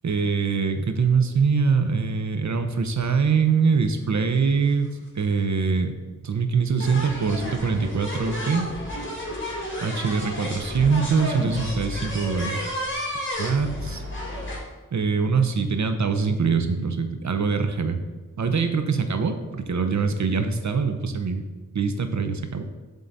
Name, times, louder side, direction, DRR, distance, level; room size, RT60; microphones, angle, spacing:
voice 1, 0.0-5.9 6.2-8.6 9.8-12.6 13.4-14.0 14.9-18.0 18.4-21.4 21.7-22.6, right 5 dB, 60° right, 8 dB, 0.7 m, -23 dB
sound 1, 4.3-4.4 4.5-4.8 5.8-5.9 6.8-14.6, equal, 35° left, 1.7 m, -32 dB
7.5 x 3.7 x 4.1 m, 1.3 s
wide cardioid pair, 65°, 33 cm